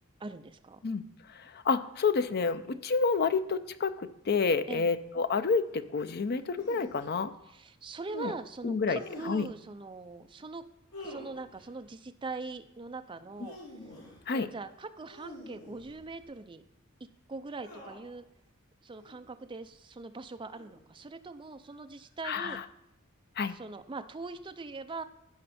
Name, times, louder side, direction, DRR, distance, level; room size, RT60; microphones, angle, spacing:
voice 1, 0.2-0.8 4.7-4.9 7.5-10.7 11.0-13.6 14.3-16.6 17.3-18.2 18.8-22.6 23.5-25.0, right 3 dB, 25° right, 8 dB, 0.5 m, -42 dB
voice 2, 1.3-7.3 8.1-8.3 8.6-9.0 9.3-9.4 13.4-13.5 14.3-14.5 22.2-22.6 23.4-23.5, left 4 dB, 50° left, 12 dB, 0.5 m, -29 dB
sound 1, 6.5-7.1 8.9-9.6 10.9-11.7 13.2-14.2 15.1-16.2 17.6-18.2 18.9-19.2 20.5-21.0 22.2-22.5, left 1 dB, 80° left, 3.5 m, -48 dB
15.5 x 5.4 x 4.2 m, 0.87 s
head